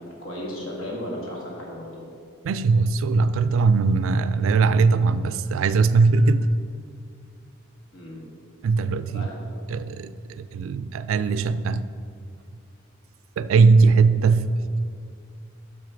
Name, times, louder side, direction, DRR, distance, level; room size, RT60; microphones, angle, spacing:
voice 1, 0.2-2.0 7.9-8.2 9.1-9.3, left 1 dB, 70° left, -3 dB, 1.9 m, -34 dB
voice 2, 2.4-6.5 8.6-9.3 9.7-11.9 13.4-14.5, right 4 dB, 70° right, 14 dB, 0.3 m, -20 dB
6.3 x 6.3 x 5.0 m, 2.3 s
head